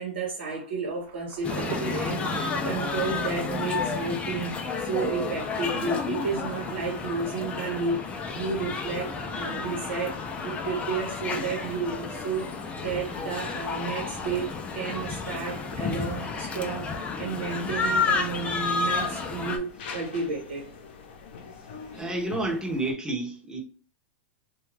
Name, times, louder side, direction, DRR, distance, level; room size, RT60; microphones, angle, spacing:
voice 1, 0.0-12.5 12.8-20.7, right 4 dB, 90° right, 0.9 m, -32 dB
Insect / Thunder / Rain, 0.8-5.2 5.7-5.8, right 7 dB, 40° right, 0.5 m, -40 dB
sound 1, 1.4-19.6, left 4 dB, 20° left, 0.4 m, -31 dB
sound 2, 8.3-22.9, left 5 dB, 70° left, 0.6 m, -46 dB
voice 2, 21.9-23.6, right 2 dB, 10° right, 0.7 m, -30 dB
2.6 x 2.3 x 3.2 m
supercardioid pair, 140°, 6 cm